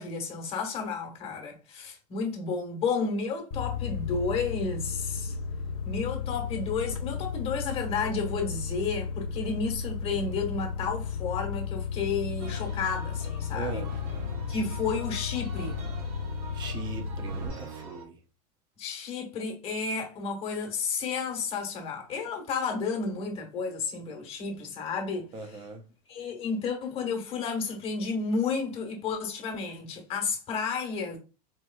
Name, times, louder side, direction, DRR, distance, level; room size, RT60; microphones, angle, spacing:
voice 1, 0.0-5.4 5.8-13.8 14.5-15.8 18.8-25.3 26.1-31.2, left 5 dB, 30° left, 1.3 m, -32 dB
sound 1, 3.5-17.5, left 6 dB, 55° left, 0.8 m, -34 dB
sound 2, 12.4-18.0, right 3 dB, 75° right, 1.3 m, -44 dB
voice 2, 13.5-13.9 16.5-18.2 25.3-25.8, right 4 dB, 25° right, 0.7 m, -39 dB
4.4 x 3.2 x 2.3 m
supercardioid pair, 155°, 19 cm